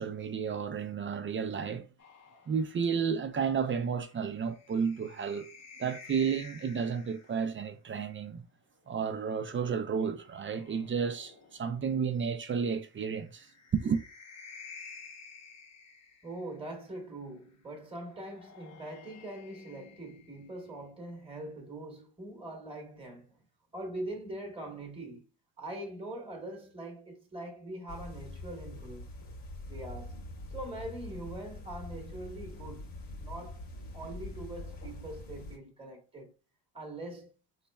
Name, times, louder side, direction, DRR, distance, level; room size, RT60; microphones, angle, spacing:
voice 1, 0.0-1.9 2.5-5.5 5.8-8.4 8.9-14.0, right 6 dB, 30° right, 0.4 m, -32 dB
sound 1, 2.0-7.5 8.9-11.9 13.2-16.7 18.0-20.9, left 5 dB, 40° left, 1.0 m, -53 dB
voice 2, 16.2-23.4 23.7-25.2 25.6-29.1 29.7-30.2 30.5-32.9 33.2-33.6 33.9-36.3 36.7-37.3, right 1 dB, 15° right, 1.1 m, -42 dB
sound 2, 27.9-35.6, left 2 dB, 70° left, 1.7 m, -44 dB
4.1 x 3.2 x 2.2 m
cardioid pair, 95°, 43 cm